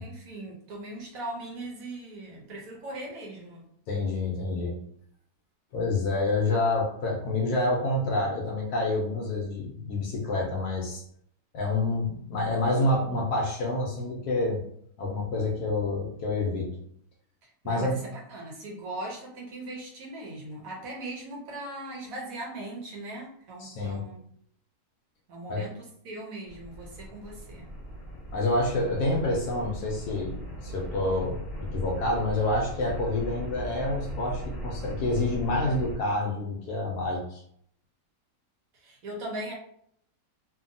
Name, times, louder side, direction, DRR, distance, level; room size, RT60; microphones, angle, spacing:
voice 1, 0.0-3.6 17.4-24.2 25.3-27.7 38.7-39.5, right 1 dB, 65° right, -1 dB, 1.0 m, -39 dB
voice 2, 3.9-4.8 5.7-11.0 11.5-14.6 15.0-16.8 17.6-18.0 23.6-24.0 25.5-25.6 28.3-37.4, left 2 dB, 75° left, -1 dB, 1.1 m, -28 dB
sound 1, 26.5-36.0, equal, 25° left, 1.0 m, -38 dB
2.7 x 2.6 x 2.5 m, 0.67 s
omnidirectional pair, 1.8 m